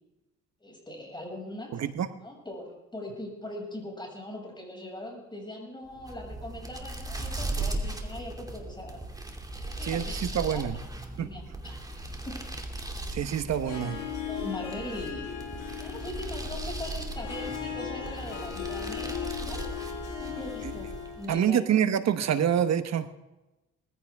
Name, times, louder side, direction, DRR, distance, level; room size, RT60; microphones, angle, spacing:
voice 1, 0.6-1.8 2.2-9.0 9.6-10.6 11.2-11.8 12.3-12.4 13.8-15.3 15.8-19.7 20.2-21.6, left 1 dB, 15° left, 0 dB, 6.4 m, -41 dB
voice 2, 1.7-2.1 9.8-10.8 11.2-11.3 13.1-14.0 20.6-20.7 21.3-23.1, right 9 dB, 60° right, 10 dB, 1.2 m, -26 dB
sound 1, 5.9-21.4, right 2 dB, 10° right, 2.6 m, -38 dB
Harp, 13.5-21.4, left 9 dB, 85° left, 4.9 m, -38 dB
20.0 x 15.0 x 3.6 m, 1.0 s
cardioid pair, 90°, 30 cm